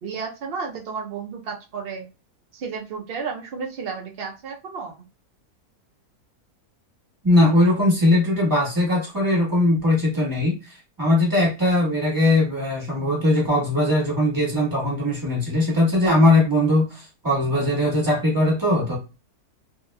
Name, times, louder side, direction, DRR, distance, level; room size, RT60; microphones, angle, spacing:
voice 1, 0.0-2.1 2.5-5.0, right 5 dB, 80° right, 1 dB, 0.5 m, -32 dB
voice 2, 7.2-19.0, left 1 dB, 15° right, -3 dB, 1.1 m, -20 dB
3.0 x 2.7 x 2.2 m, 0.29 s
omnidirectional pair, 1.7 m